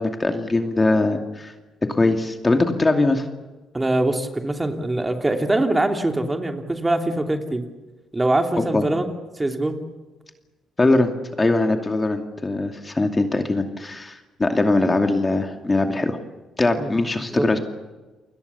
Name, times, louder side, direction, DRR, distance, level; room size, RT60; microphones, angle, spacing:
voice 1, 0.0-1.5 1.9-3.2 8.6-8.8 10.8-11.1 11.4-16.2 16.6-17.6, left 2 dB, 20° left, 5 dB, 2.6 m, -21 dB
voice 2, 3.7-7.6 8.1-9.1 9.4-9.8 16.8-16.9 17.3-17.4, right 2 dB, 15° right, 4 dB, 2.9 m, -23 dB
29.5 x 21.0 x 7.1 m, 1.2 s
cardioid pair, 90°, 0 cm